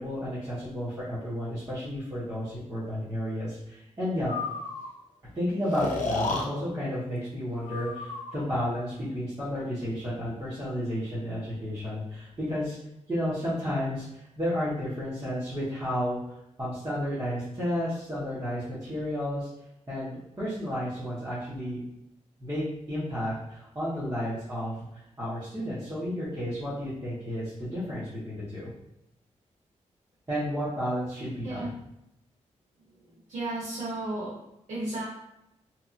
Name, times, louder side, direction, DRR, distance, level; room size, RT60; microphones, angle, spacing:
voice 1, 0.0-4.3 5.3-12.8 13.1-14.1 14.4-16.2 16.6-19.5 19.9-21.8 22.4-28.7 30.3-31.7, equal, 25° right, -13 dB, 1.2 m, -32 dB
Breathing, 4.3-4.9 5.7-6.5 7.6-8.5, left 3 dB, 90° left, 0.5 m, -32 dB
voice 2, 32.8-34.4 34.7-35.1, right 2 dB, 80° right, -10 dB, 1.2 m, -34 dB
2.9 x 2.6 x 2.5 m, 0.86 s
wide cardioid pair, 115°, 12 cm